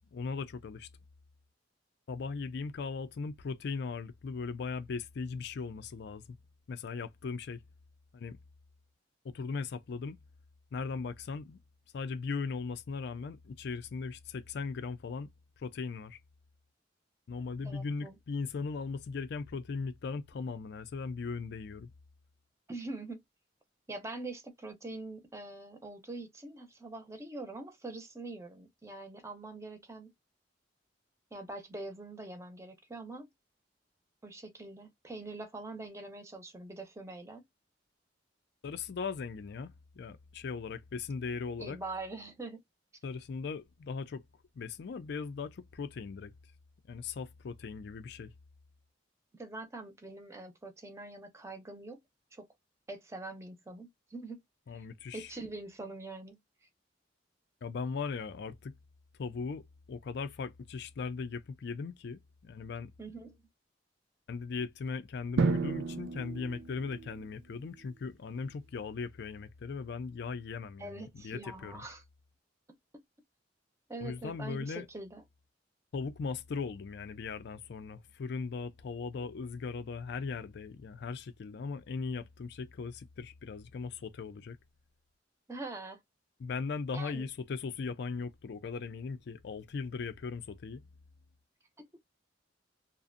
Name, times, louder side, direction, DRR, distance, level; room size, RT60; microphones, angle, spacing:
voice 1, 0.1-0.9 2.1-6.4 6.7-7.6 8.1-8.4 9.2-10.2 10.7-11.6 11.9-15.3 15.6-16.2 17.3-21.9 38.6-41.8 43.0-44.2 44.6-46.3 46.9-48.3 54.7-55.3 57.6-58.7 59.2-62.9 64.3-71.8 74.0-74.9 75.9-84.6 86.4-90.8, left 4 dB, 65° left, 0.4 m, -38 dB
voice 2, 17.6-18.2 22.7-23.2 23.9-30.1 31.3-33.3 34.2-37.4 41.6-42.6 49.3-52.0 52.3-52.5 52.9-54.4 55.1-56.4 63.0-63.4 70.8-72.0 72.9-73.0 73.9-75.2 85.5-86.0 86.9-87.3 91.8-91.9, right 2 dB, 15° right, 0.5 m, -44 dB
Drum, 65.4-67.3, right 4 dB, 75° right, 0.4 m, -32 dB
2.5 x 2.1 x 2.4 m
head